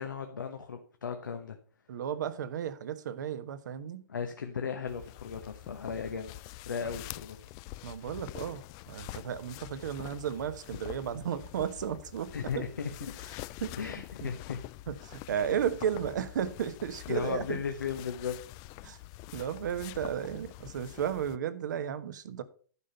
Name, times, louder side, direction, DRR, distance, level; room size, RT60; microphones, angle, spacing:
voice 1, 0.0-1.6 4.1-6.3 6.6-7.4 12.3-13.1 13.8-14.6 17.1-18.4, left 6 dB, 90° left, 1.1 m, -36 dB
voice 2, 1.9-4.0 7.8-12.6 13.6-14.3 14.9-17.6 18.8-19.0 19.3-22.4, right 9 dB, 70° right, 1.2 m, -34 dB
sound 1, 4.9-21.4, left 18 dB, 40° left, 0.4 m, -46 dB
11.0 x 5.2 x 5.6 m
hypercardioid pair, 120°, 10 cm